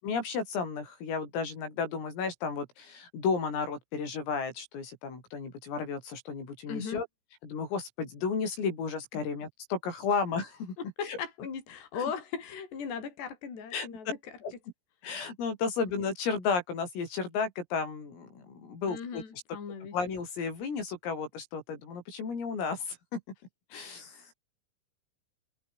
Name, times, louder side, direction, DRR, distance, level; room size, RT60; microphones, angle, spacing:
voice 1, 0.0-7.1 7.4-10.7 11.0-11.2 11.9-12.1 13.7-13.9 14.4-14.5 15.0-19.2 19.9-23.2 23.7-24.3, left 5 dB, 75° left, 10.0 m, -33 dB
voice 2, 6.7-7.0 9.1-9.2 11.0-14.1 18.9-20.0, left 6 dB, 55° left, 7.3 m, -38 dB
omnidirectional pair, 6.0 m